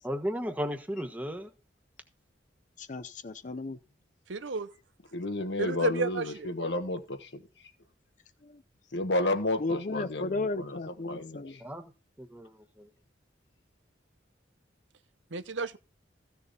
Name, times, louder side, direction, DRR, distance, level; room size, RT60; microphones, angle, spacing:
voice 1, 0.0-1.5 11.6-11.9 12.2-12.9, equal, 10° right, 1.3 m, -35 dB
voice 2, 2.8-3.8 8.4-8.6 9.6-11.6, left 2 dB, 40° left, 0.5 m, -34 dB
voice 3, 4.3-4.7 5.6-6.5 15.3-15.8, right 4 dB, 80° right, 0.8 m, -32 dB
voice 4, 5.1-7.4 8.9-11.6, left 2 dB, 65° left, 1.4 m, -32 dB
15.0 x 6.9 x 4.1 m
head